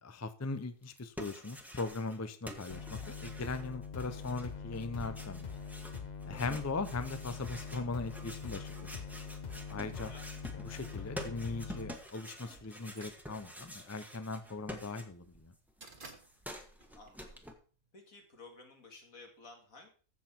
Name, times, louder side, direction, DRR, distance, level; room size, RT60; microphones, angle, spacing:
voice 1, 0.0-5.5 6.2-8.9 9.7-10.1 10.6-15.5, left 3 dB, 20° left, 11 dB, 0.5 m, -39 dB
sound 1, 0.8-2.2 2.4-15.4 15.7-17.5, equal, ahead, 1.3 m, -48 dB
sound 2, 2.7-11.9, left 6 dB, 35° left, 0.9 m, -43 dB
voice 2, 10.0-10.4 16.9-17.4 17.9-19.9, left 3 dB, 75° left, 3 dB, 2.6 m, -54 dB
sound 3, 11.7-17.9, right 3 dB, 40° right, 1.7 m, -57 dB
15.0 x 6.1 x 4.5 m, 0.39 s
omnidirectional pair, 1.4 m